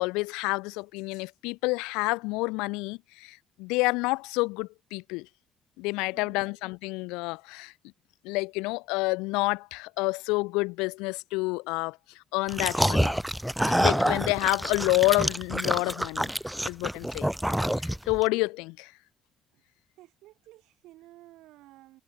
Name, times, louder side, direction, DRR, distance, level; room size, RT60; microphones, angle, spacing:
voice 1, 0.0-5.3 5.8-7.7 8.2-12.0 12.3-13.1 13.7-16.3 16.7-17.3 18.1-18.9, left 25 dB, 85° left, 0.5 m, -28 dB
voice 2, 6.1-6.6 19.5-19.6 20.0-22.0, right 17 dB, 80° right, 2.5 m, -53 dB
sound 1, 12.5-18.2, equal, 5° right, 0.3 m, -27 dB
hypercardioid pair, 55°, 0 cm